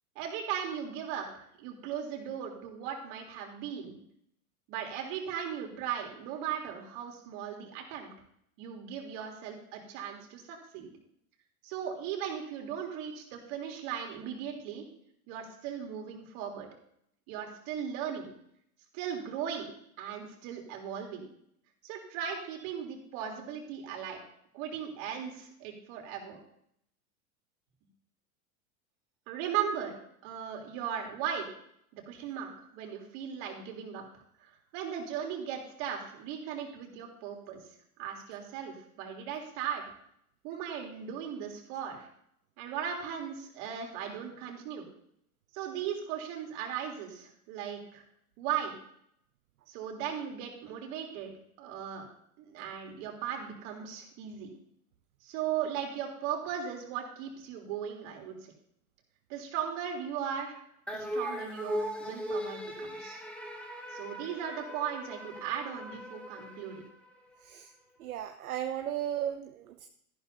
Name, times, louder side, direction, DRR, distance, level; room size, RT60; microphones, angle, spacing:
voice 1, 0.1-4.0 4.7-8.1 8.6-10.9 11.6-14.8 15.3-16.7 17.3-18.3 18.9-21.3 21.8-24.2 24.5-26.4 29.3-29.9 30.2-31.5 31.9-34.0 34.4-37.6 38.0-39.8 40.4-42.1 42.6-44.9 45.5-48.0 48.4-48.7 49.7-51.3 51.6-52.1 52.4-54.5 55.2-58.5 59.3-60.6 60.9-63.2 63.9-66.8, right 8 dB, 55° right, 1 dB, 3.5 m, -37 dB
sound 1, 60.9-67.4, equal, ahead, 2.2 m, -39 dB
voice 2, 68.0-69.9, right 10 dB, 75° right, 7 dB, 1.0 m, -35 dB
14.0 x 11.5 x 2.7 m, 0.70 s
hypercardioid pair, 90°, 44 cm